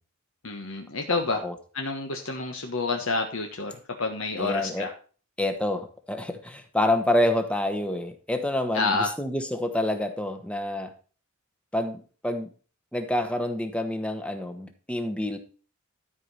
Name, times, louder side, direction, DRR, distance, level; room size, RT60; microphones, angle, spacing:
voice 1, 0.4-1.4 1.7-4.9 8.7-9.1, left 3 dB, 65° left, 3 dB, 1.2 m, -28 dB
voice 2, 4.4-4.9 5.4-10.9 11.7-12.5 12.9-15.4, left 1 dB, 5° left, 7 dB, 1.1 m, -27 dB
12.5 x 4.9 x 5.5 m, 0.38 s
head